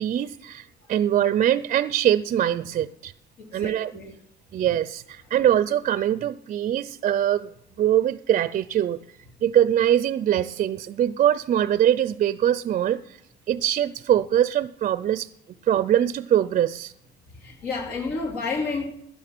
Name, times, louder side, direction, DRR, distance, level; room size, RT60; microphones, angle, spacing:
voice 1, 0.0-3.1 3.5-3.9 4.5-7.5 7.8-9.0 9.4-13.2 13.5-15.3 15.6-16.9, right 11 dB, 45° right, 0.5 m, -22 dB
voice 2, 3.4-4.2 17.3-18.9, left 4 dB, 70° left, 2.6 m, -30 dB
13.0 x 11.0 x 6.0 m
cardioid pair, 110°, 17 cm